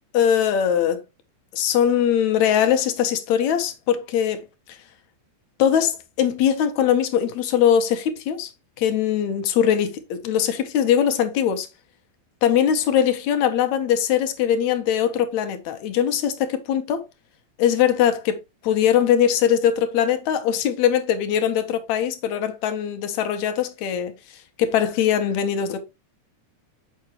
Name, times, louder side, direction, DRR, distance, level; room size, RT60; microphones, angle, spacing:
voice 1, 0.1-1.0 1.5-4.4 5.6-8.5 8.8-11.7 12.4-17.0 17.6-24.1 24.6-25.8, left 9 dB, 80° left, 2.1 m, -21 dB
7.2 x 5.7 x 2.9 m
omnidirectional pair, 3.3 m